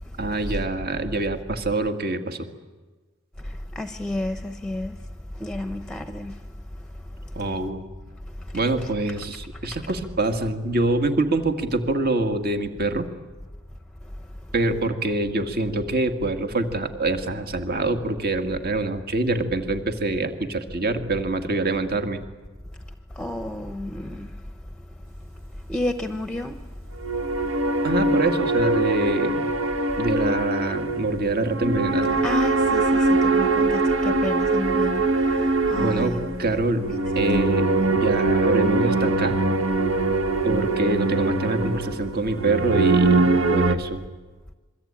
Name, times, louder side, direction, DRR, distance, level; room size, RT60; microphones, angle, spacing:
voice 1, 0.2-2.5 7.4-7.9 8.5-13.1 14.5-22.2 27.8-29.5 30.0-32.2 35.7-36.9 37.2-39.4 40.4-44.0, right 2 dB, 50° right, 2.0 m, -25 dB
voice 2, 3.8-4.9 5.4-6.3 23.2-24.3 25.7-26.5 32.2-35.0 35.7-36.4, left 1 dB, 5° left, 0.9 m, -30 dB
sound 1, 27.0-43.8, right 2 dB, 75° right, 1.6 m, -22 dB
26.5 x 23.0 x 8.9 m
head